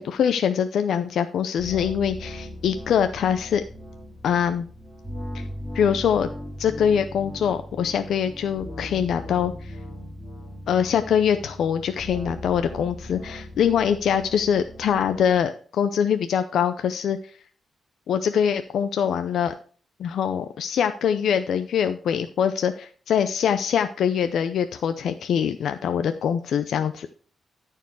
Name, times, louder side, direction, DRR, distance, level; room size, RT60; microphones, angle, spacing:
voice 1, 0.0-3.6 4.2-4.7 5.3-5.4 5.7-6.3 6.6-9.8 10.7-17.3 18.1-19.5 20.0-27.1, left 8 dB, 75° left, 9 dB, 0.5 m, -23 dB
sound 1, 1.6-15.4, left 1 dB, ahead, 2.7 m, -38 dB
13.0 x 4.6 x 4.7 m, 0.43 s
wide cardioid pair, 165°, 0 cm